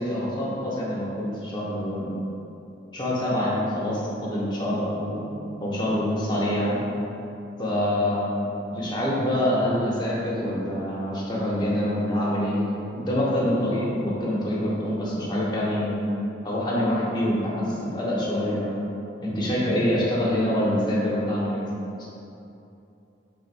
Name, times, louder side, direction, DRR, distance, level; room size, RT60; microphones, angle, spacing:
voice 1, 0.0-2.1 2.9-6.8 7.6-8.4 8.7-12.6 12.9-16.0 16.4-18.8 19.2-21.7, left 1 dB, 25° left, -6 dB, 0.7 m, -25 dB
4.5 x 3.5 x 2.5 m, 2.8 s
head